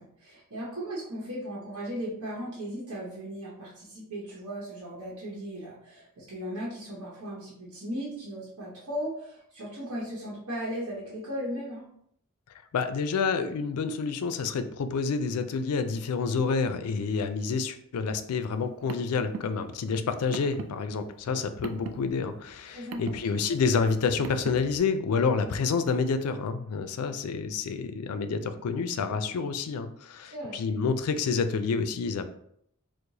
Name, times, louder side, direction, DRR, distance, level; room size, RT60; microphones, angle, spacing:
voice 1, 0.0-11.9 22.6-23.5 30.3-30.6, equal, 90° right, -6 dB, 0.9 m, -37 dB
voice 2, 12.7-32.2, left 5 dB, 85° left, 9 dB, 0.4 m, -28 dB
Car, 18.6-24.8, right 5 dB, 65° right, 0.3 m, -42 dB
4.6 x 2.1 x 2.7 m, 0.71 s
head